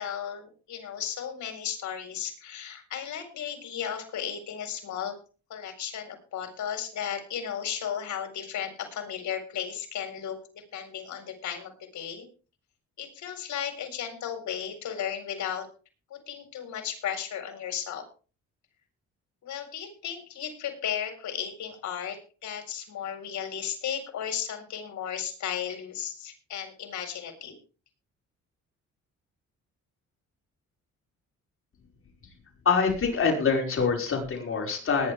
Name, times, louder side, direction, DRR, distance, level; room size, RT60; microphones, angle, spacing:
voice 1, 0.0-5.2 5.5-12.3 13.0-15.7 16.1-18.1 19.4-27.5, left 9 dB, 70° left, 5 dB, 4.3 m, -35 dB
voice 2, 32.6-35.1, left 5 dB, 45° left, 1 dB, 5.1 m, -25 dB
20.0 x 10.0 x 3.5 m, 0.35 s
cardioid pair, 90°, 30 cm